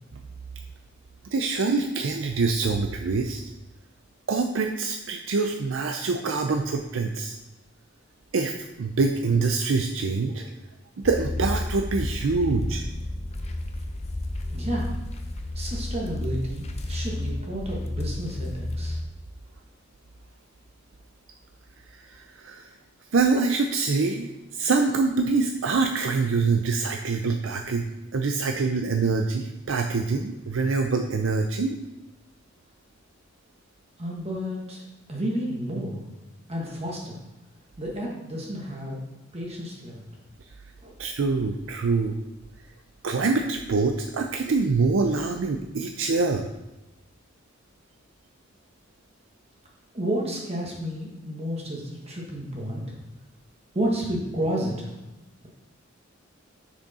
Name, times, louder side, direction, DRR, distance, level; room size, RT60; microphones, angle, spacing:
voice 1, 1.3-3.4 4.3-7.3 8.3-10.4 11.0-12.8 21.9-22.7 23.1-31.8 41.0-42.2 43.0-46.5, right 4 dB, 70° right, 4 dB, 0.5 m, -25 dB
sound 1, 11.0-19.0, left 1 dB, 35° left, 0.7 m, -31 dB
voice 2, 14.5-15.0 15.5-19.0 34.0-36.0 36.5-37.2 37.8-39.0 39.3-40.0 40.8-40.9 49.9-53.0 53.7-54.9, right 1 dB, 30° right, -2 dB, 1.3 m, -31 dB
6.3 x 6.1 x 4.1 m, 1.0 s
head